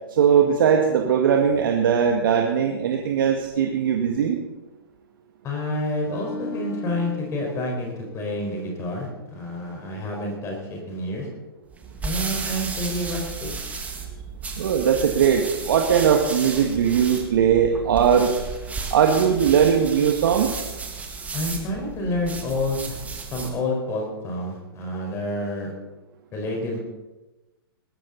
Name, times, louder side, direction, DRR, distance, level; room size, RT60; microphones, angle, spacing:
voice 1, 0.1-4.4 14.6-18.3 18.9-20.6, right 7 dB, 60° right, 2 dB, 1.8 m, -20 dB
voice 2, 5.4-11.3 12.0-13.5 21.3-23.0 23.3-25.7 26.3-26.8, left 1 dB, 25° left, 0 dB, 4.6 m, -29 dB
sound 1, 6.1-9.4 9.7-9.9, left 2 dB, 70° left, 3.4 m, -38 dB
sound 2, 11.7-23.6, right 5 dB, 10° right, 2.1 m, -34 dB
20.0 x 13.5 x 4.1 m, 1.1 s
hypercardioid pair, 120°, 13 cm